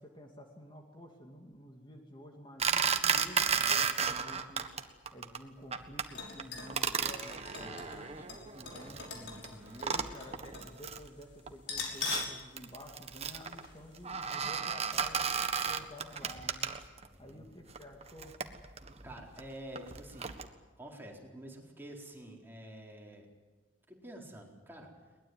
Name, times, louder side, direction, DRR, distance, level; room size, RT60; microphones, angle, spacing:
voice 1, 0.0-4.7 5.1-9.0 9.8-16.8 17.2-18.4, equal, 25° left, 2 dB, 2.4 m, -51 dB
sound 1, 2.6-4.8 5.1-5.4 5.7-6.1 6.4-9.0 9.4-9.5 9.7-11.1 11.5-17.1 17.7-20.5, right 6 dB, 35° right, 1.5 m, -34 dB
sound 2, 6.1-10.7 11.0-11.1 11.6-12.4 12.8-12.9 13.6-13.8 14.2-14.3, left 4 dB, 70° left, 5.9 m, -42 dB
voice 2, 7.6-8.3 9.1-9.9 17.1-17.5 19.0-20.4 20.8-23.3 23.9-25.1, right 1 dB, 10° right, 0 dB, 4.3 m, -49 dB
22.0 x 20.0 x 9.6 m, 1.3 s
head